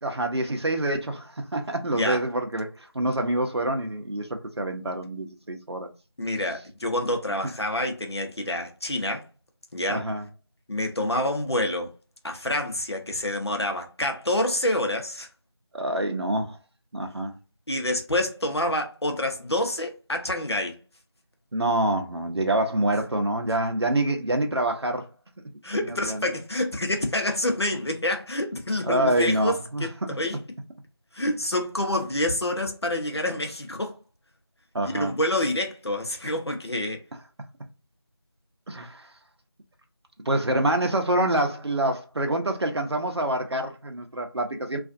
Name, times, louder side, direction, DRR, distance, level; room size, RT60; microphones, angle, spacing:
voice 1, 0.0-5.9 9.9-10.2 15.7-16.6 16.9-17.3 21.5-25.1 25.8-26.3 28.8-29.9 34.7-35.2 38.7-39.1 40.3-44.8, right 1 dB, 85° right, 0.6 m, -26 dB
voice 2, 6.2-9.2 9.7-10.1 10.7-11.9 12.2-15.3 17.7-20.8 25.6-30.4 31.1-34.0 34.8-37.0, left 1 dB, 85° left, 0.8 m, -27 dB
2.4 x 2.4 x 2.5 m
figure-of-eight pair, 170°, 13 cm